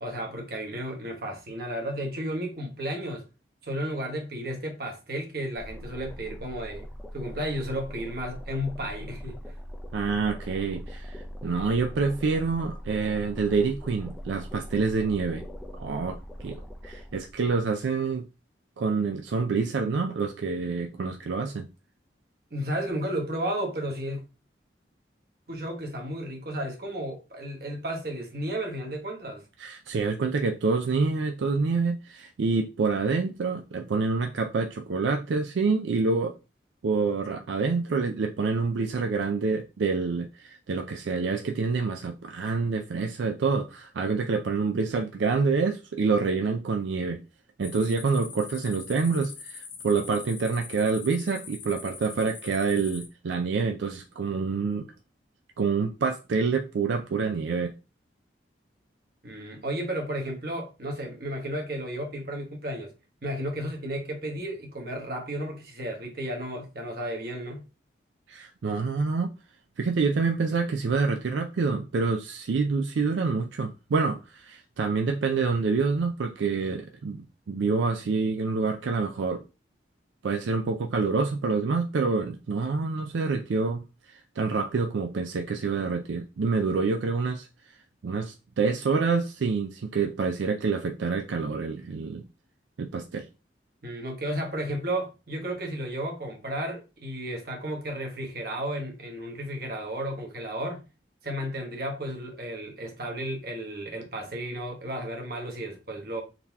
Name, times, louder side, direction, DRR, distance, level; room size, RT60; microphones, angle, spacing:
voice 1, 0.0-3.3 3.6-6.9 7.1-9.4 22.5-24.2 25.5-29.4 59.2-62.9 63.2-67.6 93.8-100.8 101.2-106.2, right 1 dB, 55° right, 1.1 m, -33 dB
sound 1, 5.5-17.5, equal, ahead, 0.5 m, -41 dB
voice 2, 9.9-15.4 15.8-18.3 18.8-21.7 29.6-36.3 36.8-47.2 47.6-54.9 55.6-57.7 68.3-69.3 69.8-79.4 80.2-87.5 88.0-92.2 92.8-93.3, right 4 dB, 85° right, 0.4 m, -27 dB
sound 2, 47.6-53.1, left 6 dB, 80° left, 1.2 m, -43 dB
3.9 x 2.8 x 3.4 m
head